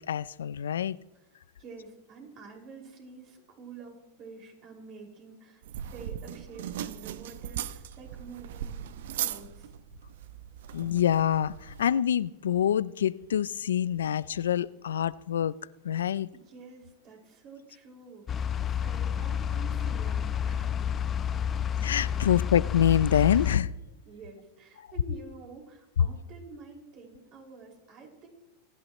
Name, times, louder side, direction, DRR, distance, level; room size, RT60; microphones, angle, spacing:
voice 1, 0.0-1.0 10.7-15.6 15.8-16.3 21.8-23.7, left 9 dB, 85° left, 0.4 m, -26 dB
voice 2, 1.1-9.8 16.3-20.8 24.0-28.3, right 4 dB, 45° right, 5.6 m, -48 dB
sound 1, 5.6-11.8, right 10 dB, 70° right, 0.8 m, -38 dB
sound 2, 18.3-23.6, left 8 dB, 30° left, 0.7 m, -30 dB
29.0 x 11.0 x 3.1 m
hypercardioid pair, 105°, 0 cm